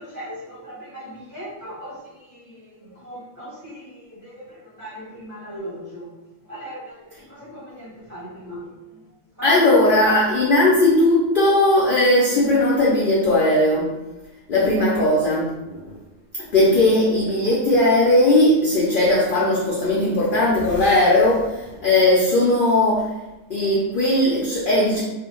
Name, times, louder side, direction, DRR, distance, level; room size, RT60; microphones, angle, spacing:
voice 1, 0.0-6.2 6.5-9.7 10.0-10.2, equal, 20° right, -9 dB, 0.7 m, -38 dB
voice 2, 9.4-13.9 14.5-16.0 16.5-23.0 23.5-25.0, left 1 dB, 65° left, -5 dB, 0.5 m, -18 dB
2.4 x 2.1 x 2.9 m, 1.0 s
omnidirectional pair, 1.4 m